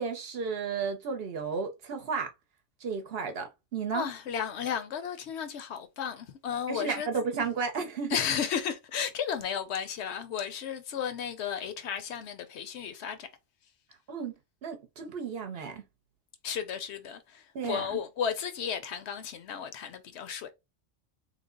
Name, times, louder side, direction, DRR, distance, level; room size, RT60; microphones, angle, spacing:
voice 1, 0.0-2.3 2.8-4.1 6.7-8.2 14.1-14.3 14.6-15.8 17.5-17.8, right 5 dB, 60° right, 0.8 m, -33 dB
voice 2, 3.9-7.1 8.1-13.3 16.4-20.5, left 8 dB, 70° left, 0.8 m, -34 dB
3.2 x 2.1 x 3.6 m
omnidirectional pair, 1.3 m